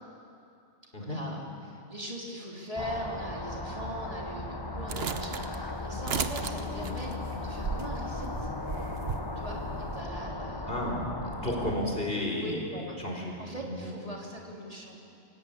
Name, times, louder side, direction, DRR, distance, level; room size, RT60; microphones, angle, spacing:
voice 1, 1.0-7.1 7.4-8.5 9.4-10.7 12.4-13.0 13.4-15.0, equal, 30° right, -2 dB, 3.2 m, -40 dB
sound 1, 2.8-11.8, left 2 dB, 20° left, 1.3 m, -37 dB
sound 2, 4.9-9.2, right 5 dB, 60° right, 1.2 m, -35 dB
sound 3, 6.4-9.2, left 3 dB, 80° left, 2.3 m, -45 dB
voice 2, 10.7-11.0 11.4-13.4 13.7-13.9, left 1 dB, 55° left, -1 dB, 4.3 m, -32 dB
27.0 x 17.0 x 8.8 m, 2.6 s
omnidirectional pair, 1.2 m